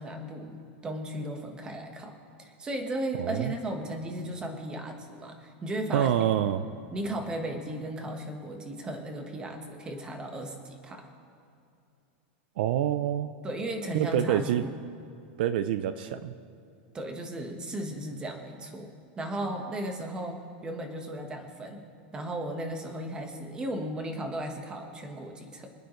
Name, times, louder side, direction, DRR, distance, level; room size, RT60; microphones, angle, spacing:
voice 1, 0.0-6.1 6.9-11.1 13.4-14.7 16.9-18.9 19.2-21.8 22.1-25.7, right 1 dB, 15° right, 4 dB, 1.3 m, -36 dB
voice 2, 3.2-3.5 5.9-6.7 12.6-13.3 13.9-14.6 15.4-16.3, right 11 dB, 65° right, 12 dB, 0.6 m, -26 dB
26.0 x 9.3 x 3.2 m, 2.5 s
supercardioid pair, 160°, 6 cm